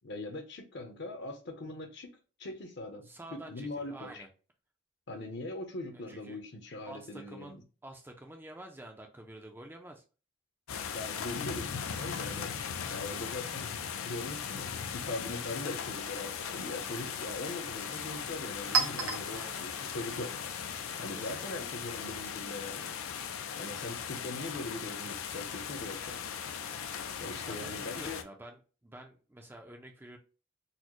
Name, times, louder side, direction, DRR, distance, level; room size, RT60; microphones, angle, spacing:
voice 1, 0.0-2.1 2.4-4.2 5.1-7.6 10.9-12.5 12.9-13.8 14.0-14.7 14.9-20.3 21.0-22.9 23.6-26.2 27.2-28.2, left 2 dB, 55° left, 5 dB, 0.7 m, -41 dB
voice 2, 3.0-4.3 5.9-6.4 6.9-7.6 7.8-10.0 19.3-19.7 21.1-22.0 27.5-30.2, right 1 dB, 10° right, 3 dB, 0.4 m, -49 dB
sound 1, 10.7-28.2, left 7 dB, 85° left, 0.4 m, -38 dB
Chink clink, 15.8-21.3, right 5 dB, 80° right, 0.9 m, -38 dB
4.1 x 2.0 x 2.9 m, 0.35 s
head